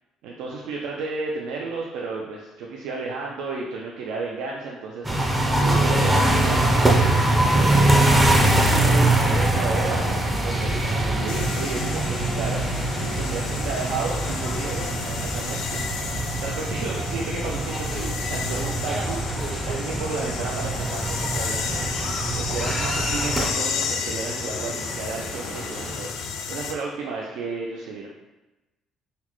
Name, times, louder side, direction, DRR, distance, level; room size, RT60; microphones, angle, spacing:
voice 1, 0.2-7.8 8.4-12.6 13.1-19.2 19.6-28.1, right 4 dB, 90° right, -2 dB, 0.4 m, -33 dB
sound 1, 5.0-23.5, right 1 dB, 10° right, 0.4 m, -23 dB
sound 2, 9.3-25.9, right 2 dB, 50° right, 1.0 m, -41 dB
sound 3, 11.3-26.7, left 6 dB, 80° left, 0.3 m, -32 dB
3.9 x 2.1 x 2.9 m, 1.0 s
cardioid pair, 145°, 0 cm